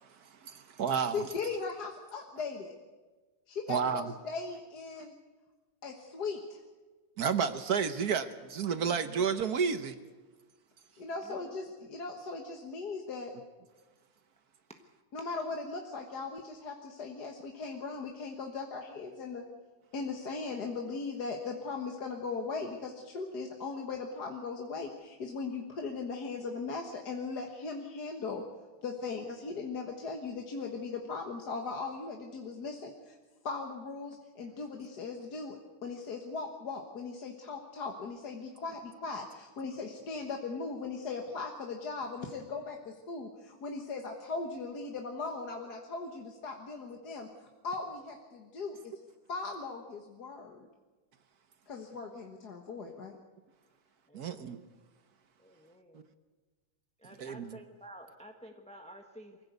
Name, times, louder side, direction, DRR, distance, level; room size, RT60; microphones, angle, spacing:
voice 1, 0.0-1.2 3.7-4.1 7.2-10.0 54.1-54.6 55.9-56.0 57.2-57.6, right 6 dB, 55° right, 11 dB, 1.3 m, -31 dB
voice 2, 1.1-2.7 3.5-5.1 5.8-6.6 11.0-13.3 15.1-19.5 19.9-28.4 28.8-33.2 33.4-48.9 49.3-50.7 51.7-53.2, left 4 dB, 50° left, 2 dB, 2.0 m, -38 dB
voice 3, 11.1-11.6 54.1-54.5 55.4-56.1 57.0-59.4, equal, 5° left, 4 dB, 1.1 m, -51 dB
24.0 x 16.0 x 8.2 m, 1.3 s
omnidirectional pair, 2.2 m